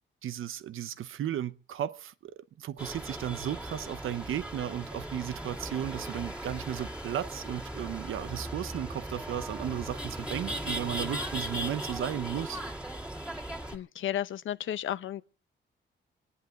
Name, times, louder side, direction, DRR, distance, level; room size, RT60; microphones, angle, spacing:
voice 1, 0.2-12.6, right 11 dB, 80° right, 0.9 m, -35 dB
sound 1, 2.8-13.8, right 1 dB, 5° right, 2.2 m, -38 dB
voice 2, 13.7-15.2, left 11 dB, 70° left, 0.7 m, -33 dB
26.5 x 10.0 x 3.8 m
cardioid pair, 130°, 21 cm